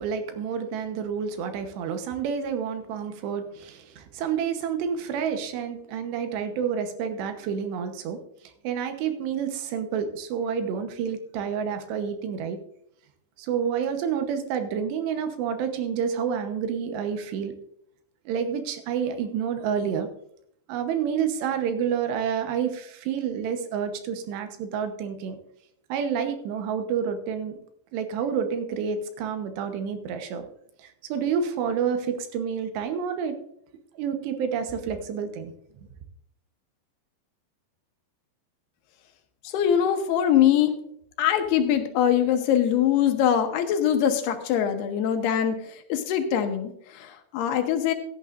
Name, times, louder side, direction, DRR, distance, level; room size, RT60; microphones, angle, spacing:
voice 1, 0.0-8.2 8.6-12.6 13.4-17.5 18.3-20.1 20.7-25.4 25.9-27.6 27.9-30.5 30.8-33.4 34.0-35.5, right 7 dB, 80° right, 7 dB, 3.2 m, -29 dB
voice 2, 39.4-40.7 41.2-47.9, left 9 dB, 80° left, 6 dB, 2.8 m, -23 dB
16.0 x 11.0 x 2.5 m, 0.71 s
omnidirectional pair, 4.9 m